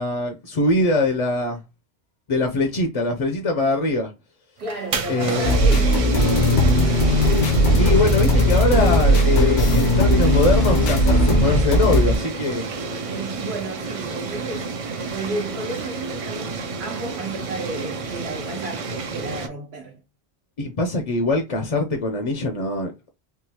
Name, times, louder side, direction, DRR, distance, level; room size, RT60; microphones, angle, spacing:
voice 1, 0.0-1.6 2.3-4.1 5.1-5.6 7.8-12.7 20.6-23.1, left 2 dB, 45° left, 0.5 m, -22 dB
sound 1, 4.6-19.5, right 4 dB, 50° right, 0.4 m, -30 dB
voice 2, 4.6-7.2 13.0-14.7 15.1-20.0, right 2 dB, 75° right, 1.1 m, -33 dB
sound 2, 5.4-12.2, equal, 85° left, 1.0 m, -17 dB
3.6 x 2.3 x 2.8 m
omnidirectional pair, 1.1 m